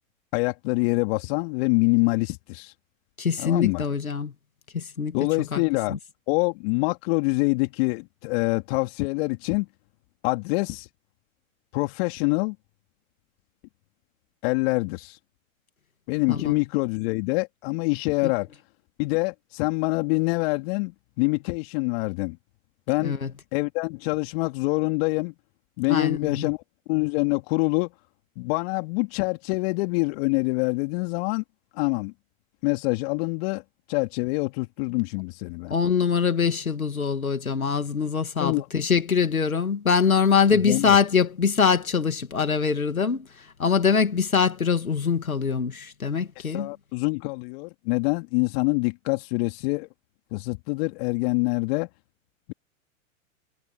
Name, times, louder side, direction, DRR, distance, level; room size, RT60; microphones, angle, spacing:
voice 1, 0.3-2.7 3.4-3.9 5.1-5.9 6.3-9.7 10.2-10.9 11.7-12.6 14.4-15.2 16.1-18.5 19.0-22.4 22.9-23.2 23.5-25.3 25.8-26.6 26.9-27.9 28.4-31.4 31.7-32.1 32.6-33.6 33.9-35.7 38.4-38.7 40.5-41.0 46.4-49.9 50.3-51.9, left 28 dB, 45° left, 3.3 m, -25 dB
voice 2, 3.2-4.3 4.7-5.2 5.5-5.6 5.9-6.0 16.3-16.5 18.2-18.3 23.0-23.3 25.9-26.5 35.7-43.3 43.6-46.7, left 6 dB, 90° left, 2.6 m, -23 dB
hypercardioid pair, 110°, 41 cm